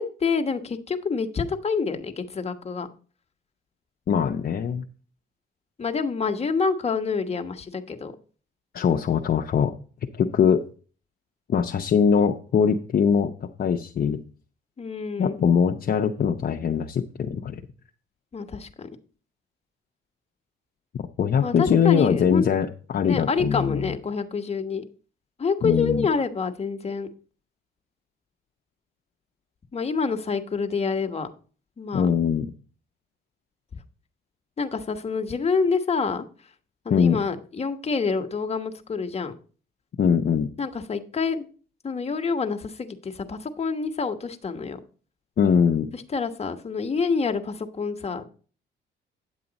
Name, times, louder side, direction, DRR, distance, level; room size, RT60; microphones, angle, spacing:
voice 1, 0.0-2.9 5.8-8.1 14.8-15.4 18.3-18.9 21.4-22.5 23.0-24.8 25.4-27.1 29.7-31.3 31.8-32.1 34.6-36.2 36.8-39.3 40.6-41.4 41.8-44.8 45.9-48.2, left 5 dB, 30° left, 6 dB, 1.3 m, -27 dB
voice 2, 4.1-4.8 8.7-9.7 10.2-10.6 11.5-14.2 15.2-17.6 21.2-23.9 25.6-26.1 31.9-32.5 36.9-37.2 40.0-40.5 45.4-45.9, left 7 dB, 50° left, 3 dB, 0.7 m, -22 dB
9.7 x 7.5 x 4.0 m, 0.39 s
cardioid pair, 90°, 20 cm